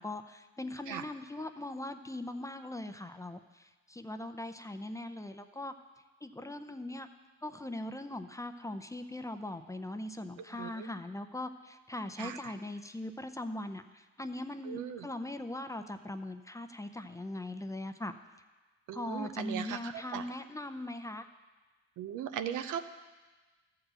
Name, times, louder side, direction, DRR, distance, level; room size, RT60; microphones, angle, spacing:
voice 1, 0.0-5.7 6.2-7.1 7.4-18.1 18.9-21.3, left 1 dB, 10° left, 8 dB, 0.6 m, -40 dB
voice 2, 14.7-15.1 18.9-20.2 22.0-22.8, right 9 dB, 80° right, 9 dB, 0.7 m, -38 dB
13.5 x 4.8 x 7.8 m, 1.3 s
cardioid pair, 90°, 30 cm